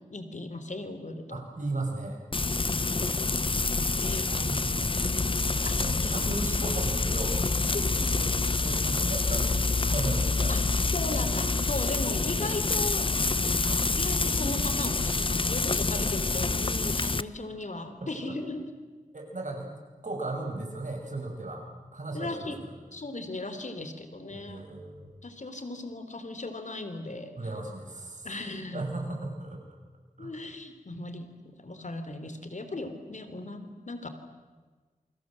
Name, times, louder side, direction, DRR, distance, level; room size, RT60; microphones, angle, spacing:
voice 1, 0.1-1.4 4.0-4.2 5.6-6.4 7.7-7.9 10.5-13.1 14.0-18.7 22.1-22.6 22.9-24.6 25.2-27.3 28.2-28.8 30.2-34.1, left 2 dB, 60° left, 9 dB, 3.2 m, -37 dB
voice 2, 1.3-2.2 3.5-5.2 5.4-10.6 18.2-18.3 19.1-21.7 21.9-22.8 24.3-25.1 27.4-28.3 28.7-29.6 30.2-30.3, right 2 dB, 65° right, 1 dB, 6.6 m, -37 dB
Frying (food), 2.3-17.2, left 3 dB, 40° left, 0.8 m, -27 dB
28.0 x 25.0 x 7.5 m, 1.4 s
wide cardioid pair, 55°, 14 cm